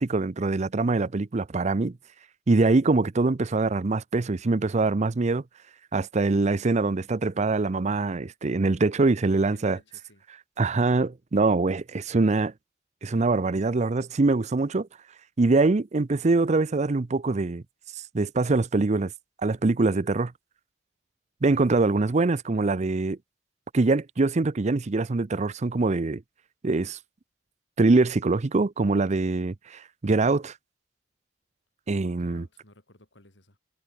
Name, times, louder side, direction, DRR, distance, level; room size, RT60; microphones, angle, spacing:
voice 1, 0.0-1.9 2.5-5.4 5.9-9.8 10.6-12.5 13.0-14.9 15.4-17.6 18.1-19.1 19.4-20.3 21.4-23.2 23.7-26.2 26.6-27.0 27.8-30.5 31.9-32.5, right 3 dB, 40° right, 0.6 m, -23 dB
voice 2, 9.4-10.2 29.1-29.3 32.1-33.6, left 1 dB, 70° left, 7.4 m, -56 dB
head